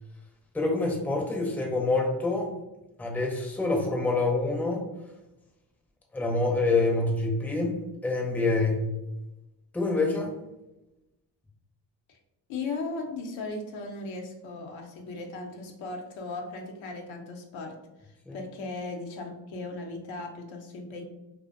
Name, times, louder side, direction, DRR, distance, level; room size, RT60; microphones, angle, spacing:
voice 1, 0.5-2.5 3.0-4.8 6.1-7.7 8.0-8.9 9.7-10.3 18.3-18.4, left 3 dB, 5° left, 0 dB, 0.5 m, -26 dB
voice 2, 12.5-17.8 18.0-21.0, left 3 dB, 75° left, 2 dB, 0.6 m, -37 dB
2.4 x 2.1 x 2.4 m, 0.95 s
supercardioid pair, 55°, 47 cm